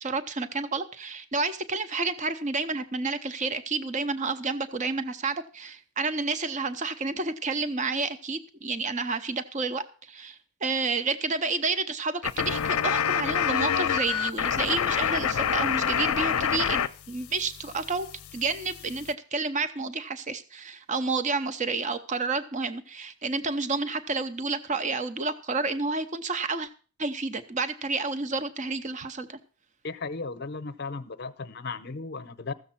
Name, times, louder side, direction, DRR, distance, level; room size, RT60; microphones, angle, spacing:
voice 1, 0.0-26.7 27.0-29.4, right 3 dB, 35° right, 11 dB, 0.7 m, -30 dB
sound 1, 12.2-16.9 17.1-19.1, left 8 dB, 80° left, 0.5 m, -27 dB
voice 2, 29.8-32.5, left 4 dB, 50° left, 12 dB, 0.7 m, -35 dB
14.5 x 7.0 x 5.8 m, 0.38 s
head